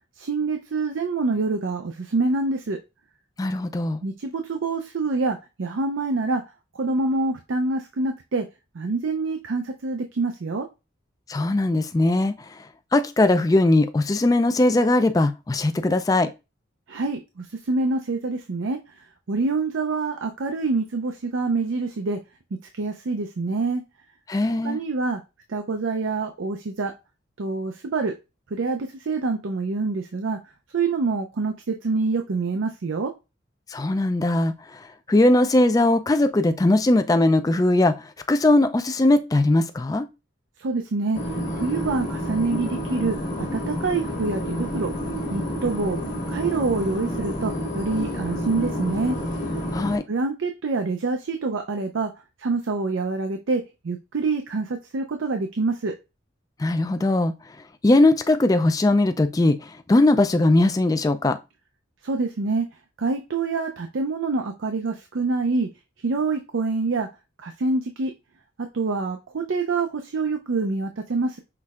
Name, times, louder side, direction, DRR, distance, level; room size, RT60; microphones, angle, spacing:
voice 1, 0.2-2.8 4.0-6.4 6.7-8.4 8.7-10.7 16.9-22.2 22.7-23.8 24.6-25.2 25.5-26.9 27.4-28.1 28.5-30.4 30.7-33.1 40.6-44.9 45.3-46.0 46.3-49.2 50.1-52.1 52.4-55.9 62.0-62.7 63.0-65.7 66.0-67.1 67.4-68.1 68.6-71.4, right 3 dB, 80° right, 0.5 m, -26 dB
voice 2, 3.4-4.0 11.3-12.3 12.9-16.3 24.3-24.8 33.7-34.8 35.1-40.1 49.7-50.0 56.6-57.3 57.8-61.4, left 2 dB, 20° left, 0.3 m, -20 dB
sound 1, 41.1-50.0, equal, 40° left, 1.2 m, -29 dB
5.8 x 3.2 x 2.4 m
head